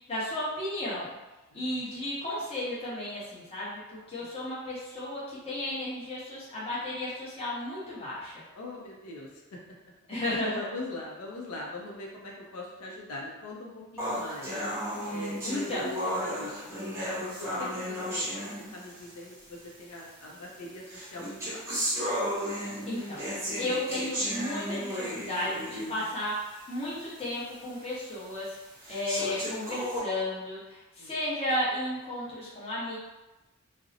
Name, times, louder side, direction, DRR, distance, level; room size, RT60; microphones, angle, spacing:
voice 1, 0.1-1.2 1.5-8.3 10.1-10.7 15.5-15.8 22.9-23.2 23.6-28.6 28.9-33.0, left 1 dB, 25° left, -8 dB, 0.8 m, -33 dB
voice 2, 8.5-9.6 10.5-14.5 15.1-17.0 17.4-21.6 31.0-31.1, left 2 dB, 85° left, -2 dB, 0.5 m, -42 dB
sound 1, 14.0-19.1 20.0-20.1 20.9-26.1 26.6-26.7 27.2-27.3 28.0-28.1 28.8-30.0, equal, 10° right, 0.8 m, -34 dB
2.5 x 2.0 x 2.7 m, 1.1 s
head